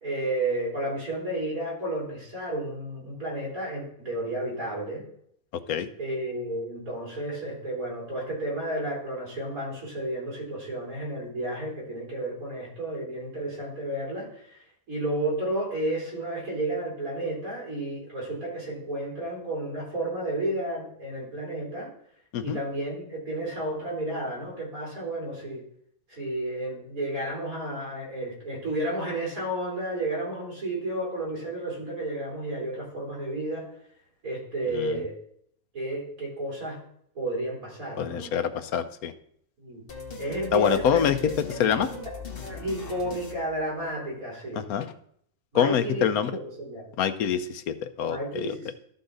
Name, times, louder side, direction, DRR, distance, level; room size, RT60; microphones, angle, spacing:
voice 1, 0.0-5.0 6.0-14.6 14.9-21.9 22.4-25.6 26.1-33.6 34.2-35.1 35.7-36.8 37.2-38.3 39.6-39.8 40.2-41.3 41.6-42.0 42.4-44.7 45.5-46.8 48.0-48.7, right 1 dB, 75° right, -4 dB, 4.2 m, -32 dB
voice 2, 38.0-39.1 40.5-41.2 41.6-41.9 44.7-44.9 45.5-46.3 47.0-48.7, left 8 dB, 90° left, 11 dB, 1.2 m, -25 dB
sound 1, 39.9-44.2, left 4 dB, 40° left, 1.4 m, -40 dB
13.0 x 5.5 x 4.0 m, 0.68 s
omnidirectional pair, 1.5 m